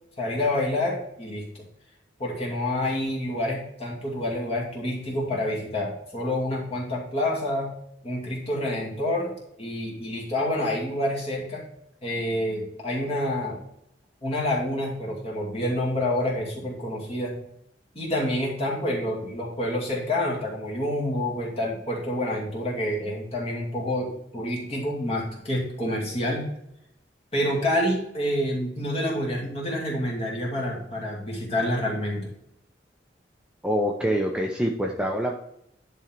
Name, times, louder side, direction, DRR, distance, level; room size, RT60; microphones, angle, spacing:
voice 1, 0.2-1.4 2.2-7.7 8.0-11.6 12.0-13.6 14.2-17.4 17.9-26.5 27.3-32.3, left 1 dB, 30° left, -2 dB, 2.3 m, -28 dB
voice 2, 33.6-35.4, equal, 5° right, 0 dB, 0.6 m, -25 dB
10.5 x 3.8 x 4.4 m, 0.78 s
head